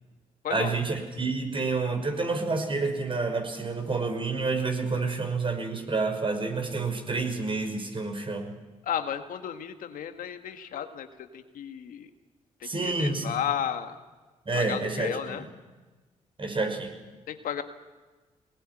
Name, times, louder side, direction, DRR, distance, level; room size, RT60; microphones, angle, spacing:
voice 1, 0.5-8.5 12.6-13.3 14.5-15.5 16.4-17.0, right 3 dB, 40° right, 5 dB, 5.9 m, -29 dB
voice 2, 8.8-11.1 11.3-12.1 12.6-14.0 14.6-15.4 17.3-17.6, left 9 dB, 75° left, 7 dB, 1.7 m, -33 dB
20.5 x 20.0 x 9.9 m, 1.3 s
supercardioid pair, 55°, 14 cm